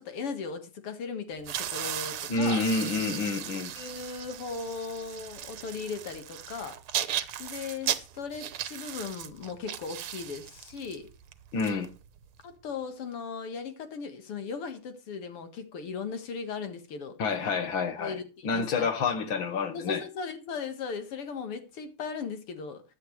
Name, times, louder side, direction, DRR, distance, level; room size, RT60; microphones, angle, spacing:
voice 1, 0.0-2.6 3.8-6.8 7.4-11.1 12.4-17.2 18.0-18.9 19.7-22.8, left 5 dB, 85° left, 2.6 m, -37 dB
sound 1, 1.4-12.4, right 11 dB, 75° right, 1.7 m, -37 dB
voice 2, 2.3-3.7 11.5-11.9 17.2-20.0, left 4 dB, 65° left, 2.3 m, -28 dB
15.5 x 10.5 x 3.2 m
omnidirectional pair, 2.4 m